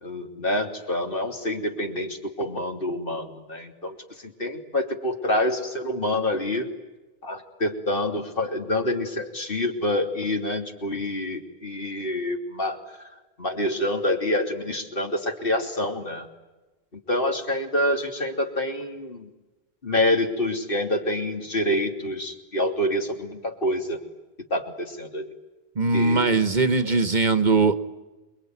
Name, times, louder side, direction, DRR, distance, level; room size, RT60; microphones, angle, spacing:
voice 1, 0.0-3.9 4.2-6.7 7.2-12.8 13.4-16.3 17.1-19.3 19.8-24.0 24.5-25.3 25.9-26.3 26.9-27.0, left 1 dB, 60° left, 3 dB, 3.2 m, -27 dB
voice 2, 25.8-27.7, right 3 dB, 50° right, 11 dB, 1.3 m, -20 dB
28.5 x 22.0 x 9.5 m, 1.1 s
omnidirectional pair, 1.0 m